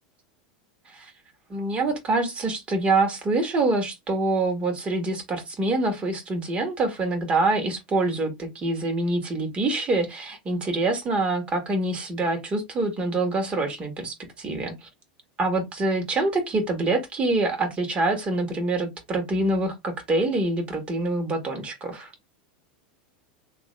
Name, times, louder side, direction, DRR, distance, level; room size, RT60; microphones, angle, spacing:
voice 1, 1.5-14.9 15.4-22.1, right 2 dB, 25° right, 1.6 m, -25 dB
3.4 x 2.6 x 3.2 m
supercardioid pair, 125°, 5 cm